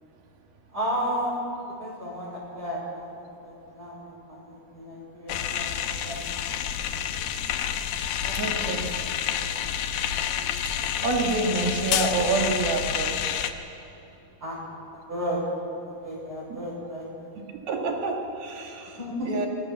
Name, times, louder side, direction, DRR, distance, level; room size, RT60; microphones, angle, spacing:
voice 1, 0.7-1.4 1.8-5.7 6.0-6.3 6.7-7.1 8.2-9.5 14.4-14.6 14.9-15.4 15.8-17.3 19.0-19.3, equal, 20° right, -4 dB, 6.3 m, -34 dB
sound 1, 5.3-13.5, left 9 dB, 75° left, 2.6 m, -29 dB
voice 2, 8.4-8.8 11.0-13.3 17.7-19.0 19.3-19.5, right 3 dB, 65° right, 2 dB, 3.9 m, -27 dB
25.0 x 21.5 x 7.5 m, 2.8 s
omnidirectional pair, 4.8 m